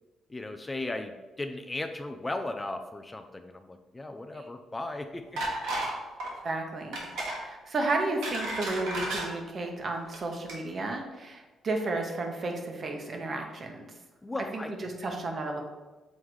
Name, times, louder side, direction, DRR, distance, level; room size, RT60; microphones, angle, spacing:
voice 1, 0.3-5.4 14.2-14.7, left 2 dB, 20° left, 7 dB, 0.4 m, -36 dB
sound 1, 5.4-5.9 6.2-6.4 6.9-7.4 7.9-9.3 10.0-10.2 10.5-10.6, right 1 dB, 85° right, 1.7 m, -33 dB
voice 2, 6.4-13.9 14.5-15.6, right 2 dB, 45° right, 3 dB, 1.1 m, -33 dB
6.3 x 3.7 x 4.7 m, 1.2 s
cardioid pair, 90°, 0 cm